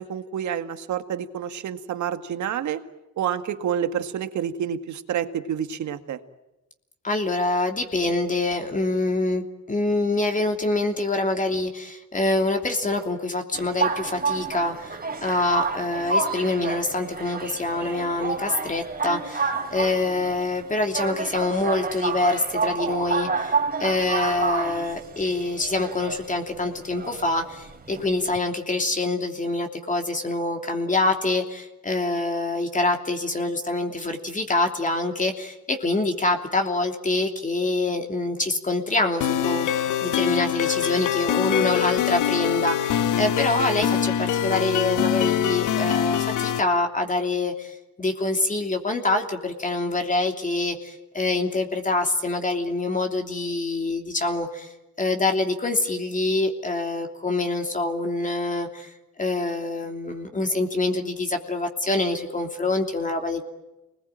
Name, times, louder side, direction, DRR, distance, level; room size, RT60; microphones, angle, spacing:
voice 1, 0.0-2.8 3.2-6.2, right 9 dB, 70° right, 9 dB, 2.0 m, -28 dB
voice 2, 7.0-58.9 59.2-63.4, left 2 dB, 25° left, 4 dB, 3.1 m, -25 dB
sound 1, 13.5-28.4, right 4 dB, 30° right, 3.8 m, -29 dB
sound 2, 39.2-46.6, left 10 dB, 80° left, 1.4 m, -24 dB
27.0 x 20.5 x 9.0 m, 0.98 s
cardioid pair, 90°, 30 cm